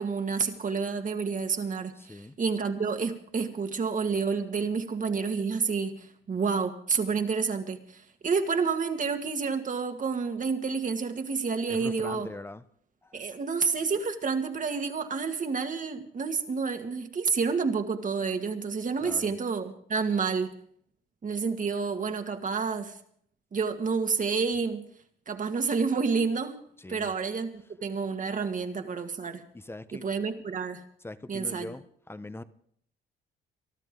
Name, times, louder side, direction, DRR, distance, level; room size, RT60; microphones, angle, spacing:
voice 1, 0.0-12.3 13.1-20.5 21.2-23.0 23.5-24.9 25.3-26.6 26.9-29.4 30.0-30.8 31.3-31.7, right 5 dB, 40° right, 7 dB, 1.7 m, -29 dB
voice 2, 2.0-2.4 11.7-12.6 13.0-13.2 19.0-19.3 26.8-27.1 29.5-30.0 31.0-32.4, left 2 dB, 10° left, 13 dB, 0.8 m, -42 dB
23.5 x 12.0 x 3.8 m, 0.65 s
cardioid pair, 90°, 20 cm